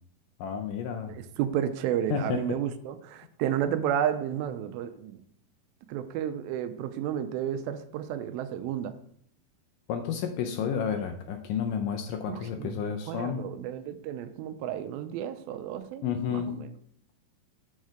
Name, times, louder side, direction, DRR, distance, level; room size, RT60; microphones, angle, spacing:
voice 1, 0.4-1.2 2.1-2.6 9.9-13.4 16.0-16.5, left 7 dB, 80° left, 5 dB, 2.0 m, -31 dB
voice 2, 1.1-5.2 5.9-9.0 12.3-16.0 16.3-16.6, right 10 dB, 85° right, 10 dB, 2.4 m, -32 dB
6.4 x 4.6 x 6.2 m, 0.65 s
omnidirectional pair, 4.3 m